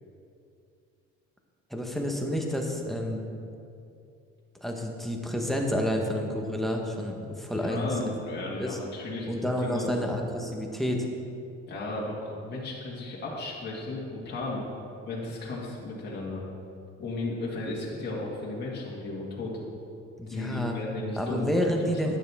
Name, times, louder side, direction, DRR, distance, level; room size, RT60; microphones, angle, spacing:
voice 1, 1.7-3.2 4.6-8.1 8.6-8.8 9.3-11.1 20.2-20.7 21.2-22.2, equal, ahead, 1 dB, 0.9 m, -29 dB
voice 2, 7.6-10.1 11.7-14.6 15.1-16.4 17.0-19.6 20.3-21.5 22.0-22.2, left 2 dB, 35° left, -5 dB, 1.9 m, -35 dB
11.5 x 9.9 x 3.5 m, 2.5 s
cardioid pair, 155°, 29 cm